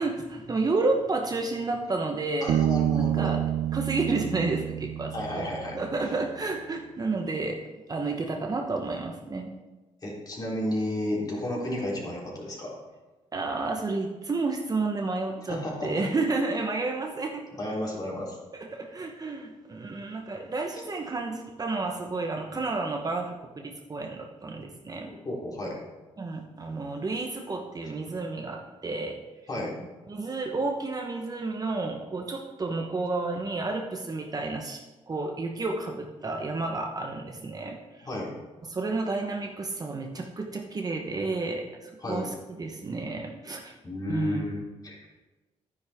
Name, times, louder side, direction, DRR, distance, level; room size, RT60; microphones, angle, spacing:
voice 1, 0.0-2.6 2.9-3.4 3.7-7.6 7.9-9.5 13.3-17.5 18.5-25.2 26.2-29.2 30.1-38.1 38.7-43.7 44.1-44.4, right 3 dB, 30° right, 2 dB, 1.0 m, -31 dB
voice 2, 2.4-3.3 5.1-6.1 10.0-12.7 15.5-16.0 17.5-18.4 25.0-25.8 29.5-29.7 38.1-38.4 42.0-42.3 43.8-44.6 44.8-45.1, left 1 dB, 30° left, -4 dB, 3.5 m, -32 dB
Bass guitar, 2.5-6.0, right 12 dB, 80° right, 0.5 m, -28 dB
11.0 x 9.9 x 3.6 m, 1.2 s
cardioid pair, 110°, 12 cm